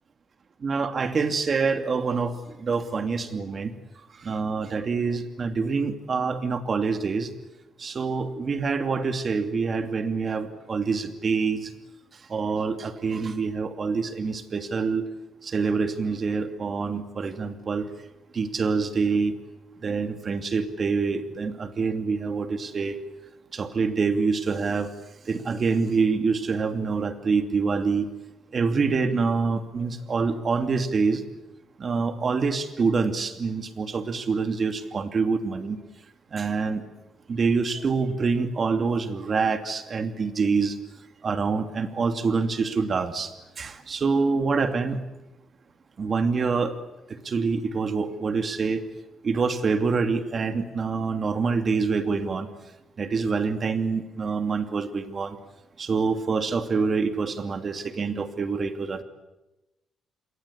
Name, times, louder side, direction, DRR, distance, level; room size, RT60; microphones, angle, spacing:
voice 1, 0.6-3.7 4.2-7.3 7.8-11.7 12.3-15.1 15.4-17.9 18.3-19.3 19.8-23.0 23.5-24.9 25.3-28.1 28.5-31.2 31.8-35.8 36.3-36.8 37.3-40.7 41.2-43.3 43.6-45.0 46.0-46.7 47.2-48.8 49.2-52.5 53.0-55.4 55.8-59.0, right 4 dB, 45° right, 8 dB, 2.7 m, -26 dB
27.5 x 22.5 x 8.7 m, 1.0 s
cardioid pair, 85°, 0 cm